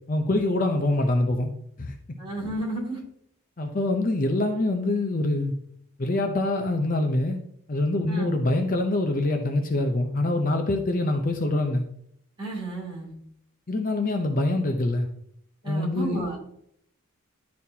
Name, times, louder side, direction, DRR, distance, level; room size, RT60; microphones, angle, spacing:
voice 1, 0.1-1.5 1.8-2.2 3.6-5.6 6.0-7.4 7.7-11.9 13.7-15.1 15.6-16.3, left 2 dB, 40° left, 4 dB, 0.6 m, -25 dB
voice 2, 2.2-3.0 8.1-8.3 12.4-13.1 15.6-16.4, right 2 dB, 25° right, -5 dB, 3.0 m, -32 dB
11.0 x 4.2 x 2.8 m, 0.70 s
head